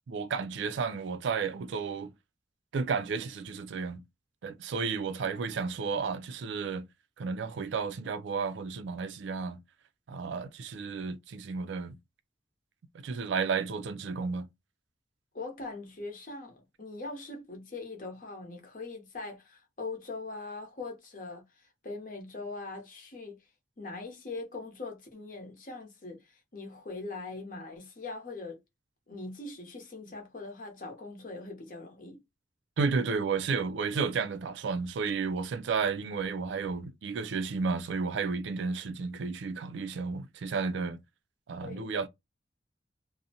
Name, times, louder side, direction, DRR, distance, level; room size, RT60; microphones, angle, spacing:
voice 1, 0.1-2.1 2.7-4.0 4.4-6.9 7.2-9.6 10.1-12.0 12.9-14.5 32.8-41.0 41.5-42.1, right 5 dB, 75° right, 0.4 m, -32 dB
voice 2, 5.2-5.7 15.3-23.4 23.8-28.6 29.1-32.2 41.6-41.9, left 3 dB, 45° left, 0.7 m, -42 dB
2.5 x 2.1 x 2.7 m
head